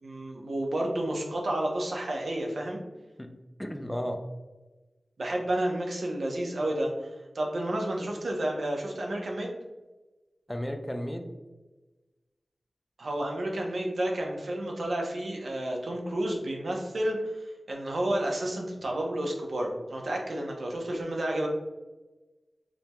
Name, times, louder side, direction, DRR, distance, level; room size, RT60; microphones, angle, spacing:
voice 1, 0.0-2.8 5.2-9.5 13.0-21.5, right 1 dB, 75° right, 0 dB, 0.8 m, -31 dB
voice 2, 3.6-4.2 10.5-11.3, equal, 10° left, 5 dB, 0.4 m, -33 dB
5.0 x 2.3 x 2.9 m, 1.2 s
wide cardioid pair, 70°, 0 cm